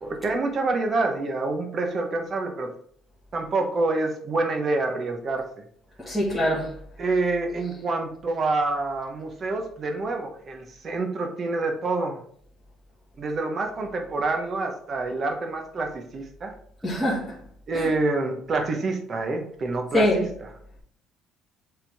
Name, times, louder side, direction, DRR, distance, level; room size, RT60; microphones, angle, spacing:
voice 1, 0.0-2.7 3.3-5.4 7.0-12.2 13.2-16.5 17.7-20.5, right 3 dB, 35° right, 1.1 m, -27 dB
voice 2, 6.0-6.7 16.8-17.4 17.7-17.9 19.9-20.2, left 1 dB, 5° left, 1.6 m, -23 dB
7.4 x 3.7 x 3.5 m
cardioid pair, 120°, 0 cm